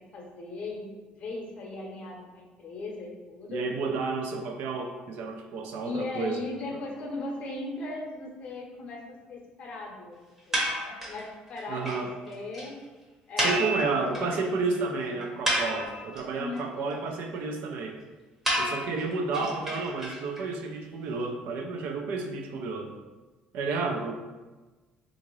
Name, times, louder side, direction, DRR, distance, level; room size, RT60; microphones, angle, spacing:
voice 1, 0.0-3.6 5.8-10.2 10.5-12.8 13.3-14.5 15.0-15.3 16.3-16.6 19.3-19.7, left 2 dB, 45° left, -1 dB, 0.7 m, -38 dB
voice 2, 3.5-6.4 11.7-12.1 13.4-18.0 18.6-22.9 23.5-24.1, right 4 dB, 70° right, 3 dB, 0.5 m, -31 dB
sound 1, 10.5-11.2 11.6-11.7 11.9-12.0 12.3-12.4 12.5-12.7 13.4-14.4 14.7-14.8 15.2-16.2 18.5-20.4, equal, 10° right, 0.8 m, -29 dB
3.7 x 2.5 x 3.0 m, 1.2 s
cardioid pair, 145°, 3 cm